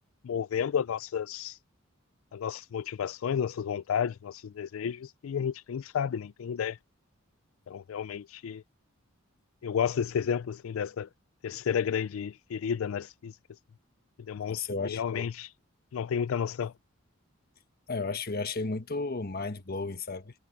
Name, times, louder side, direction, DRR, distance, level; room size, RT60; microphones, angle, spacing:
voice 1, 0.2-1.6 2.3-6.8 7.7-8.6 9.6-11.1 11.4-13.4 14.3-15.5 15.9-16.7, left 7 dB, 80° left, 0.4 m, -32 dB
voice 2, 14.5-15.3 17.9-20.3, left 3 dB, 50° left, 1.4 m, -33 dB
head